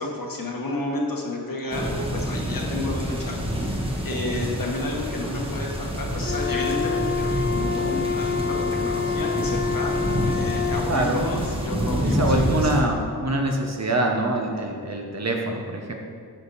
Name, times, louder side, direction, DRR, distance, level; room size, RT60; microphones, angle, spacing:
voice 1, 0.0-3.1 4.0-9.9 10.2-12.7, left 2 dB, 60° left, -1 dB, 1.5 m, -31 dB
sound 1, 1.7-12.8, equal, 15° right, 1.4 m, -28 dB
Wind instrument woodwind instrument, 6.2-10.9, left 6 dB, 30° left, 0.7 m, -27 dB
voice 2, 10.9-11.2 12.0-15.9, right 1 dB, 40° right, 2 dB, 1.1 m, -25 dB
9.6 x 5.3 x 4.2 m, 2.1 s
wide cardioid pair, 65°, 39 cm